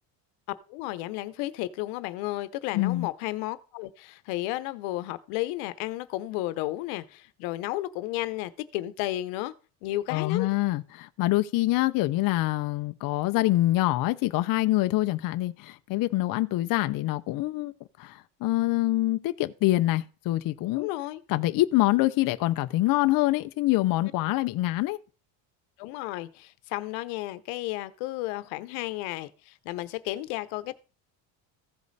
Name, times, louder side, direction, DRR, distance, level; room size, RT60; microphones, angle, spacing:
voice 1, 0.7-9.5 9.8-10.5 20.8-21.2 25.8-30.7, left 17 dB, 90° left, 0.9 m, -33 dB
voice 2, 2.7-3.1 10.1-17.7 18.0-20.9 21.3-25.0, left 17 dB, 45° left, 0.5 m, -25 dB
15.0 x 5.2 x 4.0 m
cardioid pair, 150°, 49 cm